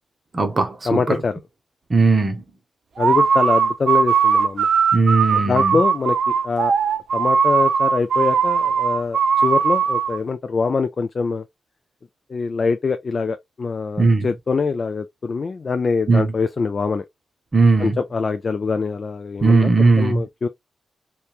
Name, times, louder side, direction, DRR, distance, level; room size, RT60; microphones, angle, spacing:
voice 1, 0.3-1.0 1.9-2.4 4.9-5.8 14.0-14.3 16.1-16.3 17.5-18.0 19.4-20.2, right 3 dB, 30° right, 0.7 m, -17 dB
voice 2, 0.9-1.4 3.0-4.7 5.4-6.7 7.1-11.4 12.3-17.0 17.8-20.5, left 4 dB, 45° left, 0.3 m, -24 dB
sound 1, 3.0-10.2, right 6 dB, 60° right, 0.4 m, -19 dB
3.0 x 2.2 x 2.3 m
wide cardioid pair, 110°, 0 cm